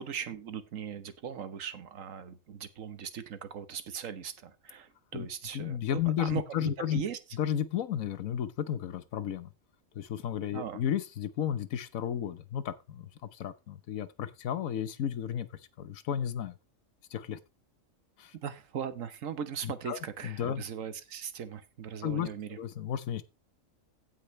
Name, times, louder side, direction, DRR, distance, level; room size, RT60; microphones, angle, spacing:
voice 1, 0.0-7.2 10.5-10.8 18.4-22.6, right 8 dB, 75° right, 1.4 m, -39 dB
voice 2, 5.5-7.0 7.4-9.5 9.9-15.5 15.8-16.5 17.1-17.4 18.2-18.3 19.6-20.0 20.2-20.6 22.0-22.3 22.6-23.2, left 9 dB, 90° left, 1.3 m, -33 dB
16.5 x 5.6 x 3.1 m
omnidirectional pair, 1.4 m